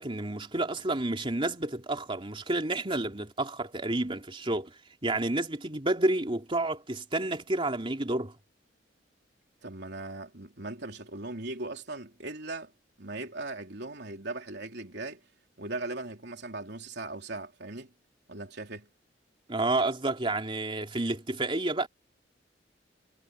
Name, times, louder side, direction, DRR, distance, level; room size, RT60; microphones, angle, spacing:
voice 1, 0.0-4.7 5.0-8.3 19.5-21.9, right 2 dB, 30° right, 3.0 m, -30 dB
voice 2, 9.6-12.7 13.0-15.2 15.6-17.9 18.3-18.9, right 2 dB, 65° right, 3.7 m, -39 dB
head